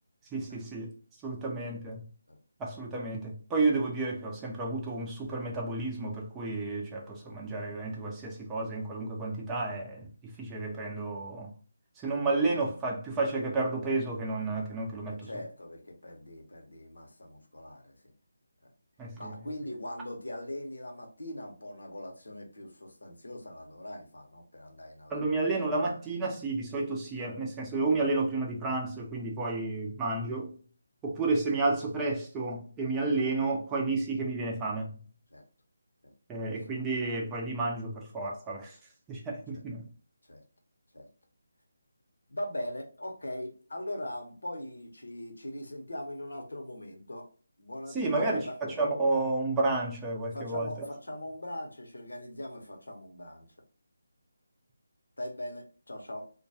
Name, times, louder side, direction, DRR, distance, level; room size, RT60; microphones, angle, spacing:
voice 1, 0.3-0.9 1.2-2.0 2.6-11.5 12.0-15.2 19.0-19.3 25.1-30.5 31.0-35.0 36.3-38.8 39.1-39.9 47.9-50.7, right 3 dB, 10° right, 0.5 m, -31 dB
voice 2, 15.1-18.1 19.1-25.4 35.3-35.4 36.0-36.1 36.7-36.9 39.5-39.6 40.2-40.4 40.9-41.1 42.3-47.3 47.6-48.5 50.3-53.5 55.2-56.3, left 1 dB, 80° left, 0.8 m, -41 dB
2.2 x 2.2 x 2.7 m
figure-of-eight pair, 155°, 0 cm